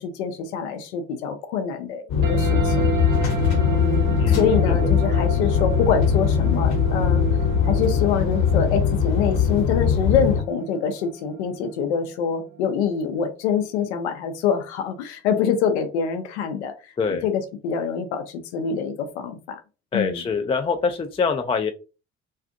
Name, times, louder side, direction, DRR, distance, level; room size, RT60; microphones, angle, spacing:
voice 1, 0.0-2.9 3.5-7.2 7.6-16.9 17.2-17.3 17.6-19.6 19.9-20.2, left 7 dB, 80° left, 7 dB, 0.5 m, -25 dB
sound 1, 2.1-10.4, left 7 dB, 55° left, 1.0 m, -21 dB
Grand Bell, 2.2-13.2, right 6 dB, 60° right, 1.0 m, -32 dB
voice 2, 4.2-4.9 17.0-17.3 19.9-21.7, left 5 dB, 20° left, 6 dB, 0.3 m, -25 dB
2.4 x 2.4 x 2.5 m, 0.32 s
hypercardioid pair, 55°, 33 cm